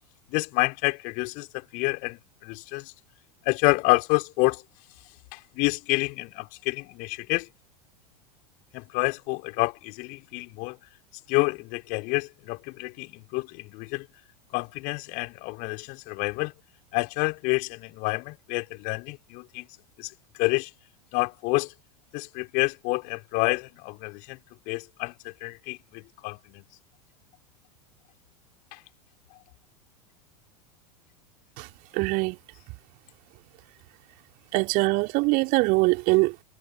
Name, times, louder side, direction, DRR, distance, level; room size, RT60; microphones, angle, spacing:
voice 1, 0.3-2.9 3.5-4.6 5.3-7.5 8.7-10.8 11.3-14.1 14.5-16.5 16.9-19.7 20.0-20.1 20.4-20.7 21.1-21.7 22.1-24.4 24.7-26.6 28.7-28.8, left 26 dB, 45° left, 4.3 m, -28 dB
voice 2, 31.9-32.4 34.5-36.4, right 26 dB, 45° right, 3.4 m, -23 dB
figure-of-eight pair, 85°, 20 cm